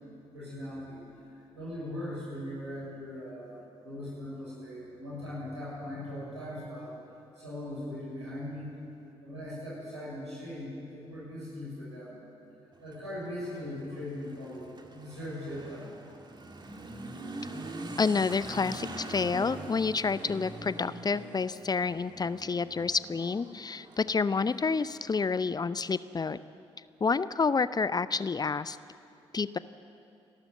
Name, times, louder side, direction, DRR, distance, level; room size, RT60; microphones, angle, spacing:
voice 1, 0.3-7.0 7.3-8.7 9.2-12.2 12.8-15.9, left 1 dB, 90° right, -7 dB, 6.2 m, -40 dB
Motorcycle / Accelerating revving vroom, 12.7-25.0, right 2 dB, 30° right, 2.2 m, -44 dB
voice 2, 18.0-26.4 27.0-28.8 29.3-29.6, left 4 dB, 30° left, 16 dB, 0.6 m, -29 dB
29.0 x 12.5 x 7.7 m, 2.7 s
figure-of-eight pair, 40°, 14 cm